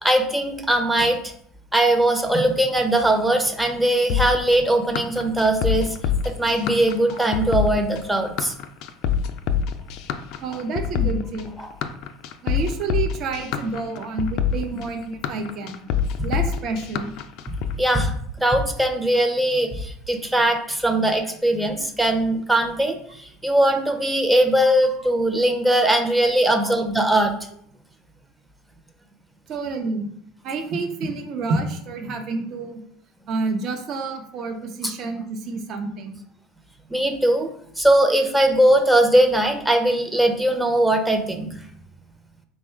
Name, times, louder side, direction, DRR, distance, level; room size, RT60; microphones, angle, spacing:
voice 1, 0.0-1.2 1.7-6.0 6.2-8.5 11.6-11.7 17.5-27.3 34.8-34.9 36.9-37.5 37.8-41.5, right 1 dB, 5° right, 5 dB, 0.6 m, -20 dB
sound 1, 4.1-17.7, left 8 dB, 65° left, 0.3 m, -26 dB
voice 2, 10.4-11.5 12.4-15.9 16.2-17.1 24.6-24.9 26.5-26.8 29.5-30.1 30.4-32.8 33.3-36.2, right 3 dB, 50° right, 5 dB, 0.7 m, -29 dB
3.6 x 2.2 x 4.4 m, 0.67 s
supercardioid pair, 100°, 0 cm